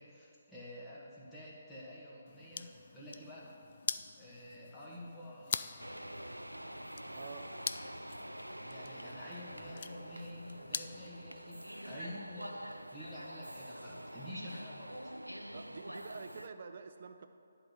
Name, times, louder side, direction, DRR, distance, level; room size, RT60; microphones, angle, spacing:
voice 1, 0.0-2.7 2.9-3.5 4.2-5.8 8.6-15.2, left 1 dB, 10° left, -8 dB, 1.9 m, -49 dB
sound 1, 2.3-11.1, left 6 dB, 45° left, 0.3 m, -44 dB
sound 2, 5.8-16.5, right 1 dB, 90° right, 0.4 m, -46 dB
voice 2, 7.1-7.5 15.5-17.3, right 5 dB, 45° right, 8 dB, 0.6 m, -48 dB
11.0 x 4.1 x 7.6 m, 2.6 s
figure-of-eight pair, 140°, 0 cm